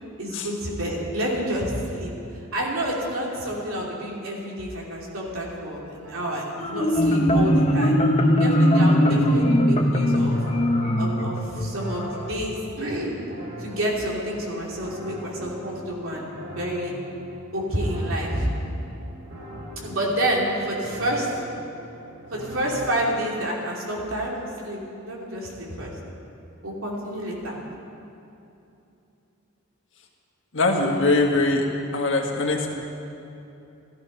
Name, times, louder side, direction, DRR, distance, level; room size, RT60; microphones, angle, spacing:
voice 1, 0.2-2.1 2.5-7.9 8.4-10.4 11.0-13.2 13.6-16.9 17.5-18.5 19.8-21.3 22.3-25.9 26.6-27.6, right 1 dB, 75° right, -3 dB, 3.2 m, -29 dB
sound 1, 6.0-23.2, equal, 60° right, 3.3 m, -42 dB
Marimba xylophone, 6.6-12.1, equal, 30° left, 0.9 m, -20 dB
voice 2, 30.5-31.7 31.9-32.7, left 2 dB, 60° left, 1 dB, 1.8 m, -22 dB
15.0 x 13.5 x 5.5 m, 2.9 s
head